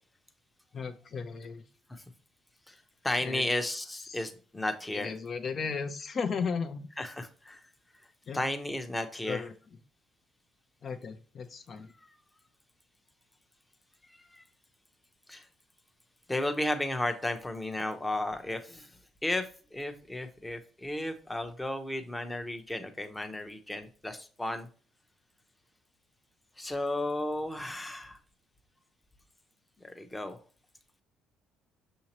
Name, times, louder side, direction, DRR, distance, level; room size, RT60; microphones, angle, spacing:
voice 1, 0.7-1.6 3.2-3.4 4.1-4.2 4.9-6.9 8.3-8.4 9.3-9.5 10.8-11.9, left 5 dB, 50° left, 6 dB, 0.7 m, -35 dB
voice 2, 3.0-5.1 7.0-7.6 8.3-9.5 14.2-14.4 15.3-15.5 16.3-18.9 19.2-24.7 26.6-28.2 29.8-30.4, left 1 dB, 10° left, 6 dB, 0.8 m, -34 dB
6.4 x 2.8 x 2.9 m, 0.41 s
hypercardioid pair, 60°, 0 cm